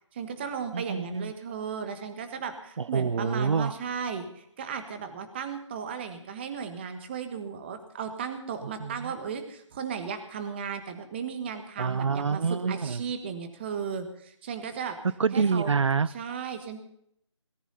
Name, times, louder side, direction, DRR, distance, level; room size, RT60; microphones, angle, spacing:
voice 1, 0.1-15.0 15.3-15.7 16.1-16.8, right 6 dB, 20° right, 8 dB, 1.5 m, -35 dB
voice 2, 0.7-1.3 2.8-3.7 8.8-8.9 11.8-13.0 15.2-16.1, right 5 dB, 70° right, 18 dB, 0.5 m, -26 dB
18.0 x 16.0 x 4.1 m, 0.72 s
figure-of-eight pair, 165°, 16 cm